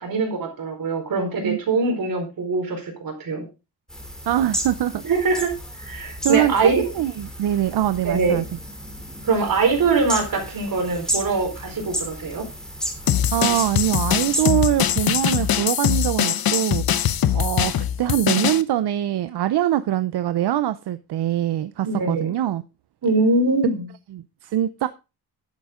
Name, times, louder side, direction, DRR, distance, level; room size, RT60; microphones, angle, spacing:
voice 1, 0.0-3.5 5.0-5.5 5.8-6.9 8.0-8.4 9.2-12.4 21.8-22.3 23.0-23.9, right 3 dB, 60° right, 4.5 m, -22 dB
sound 1, 3.9-15.5, equal, ahead, 2.9 m, -33 dB
voice 2, 4.3-5.0 6.2-8.4 13.3-17.7 18.0-22.6 24.1-24.9, right 12 dB, 85° right, 0.6 m, -23 dB
sound 2, 13.1-18.6, left 10 dB, 65° left, 0.8 m, -22 dB
11.5 x 8.6 x 3.7 m
wide cardioid pair, 155°, 39 cm